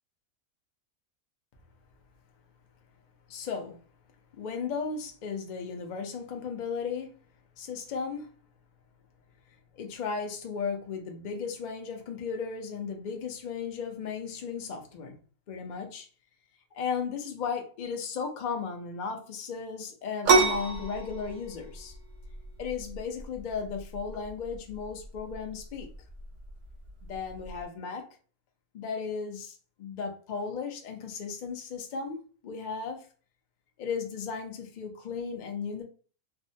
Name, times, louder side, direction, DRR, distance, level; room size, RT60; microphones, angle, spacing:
voice 1, 3.3-3.8 4.4-7.2 7.6-8.3 9.7-15.2 15.5-16.1 16.7-21.9 22.6-25.9 27.0-28.0 28.7-33.1 33.8-35.8, left 5 dB, 55° left, 0.5 m, -35 dB
sound 1, 20.3-27.6, right 4 dB, 65° right, 0.9 m, -30 dB
3.5 x 2.1 x 2.6 m
omnidirectional pair, 1.4 m